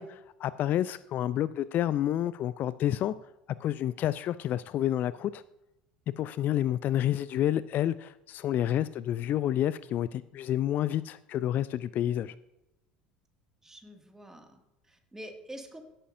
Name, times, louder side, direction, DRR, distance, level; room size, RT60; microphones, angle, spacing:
voice 1, 0.0-3.1 3.6-5.4 6.2-12.3, left 11 dB, 45° left, 17 dB, 0.3 m, -29 dB
voice 2, 13.6-15.8, equal, 10° right, 3 dB, 1.9 m, -46 dB
16.5 x 8.8 x 2.6 m, 0.91 s
figure-of-eight pair, 65°, 4 cm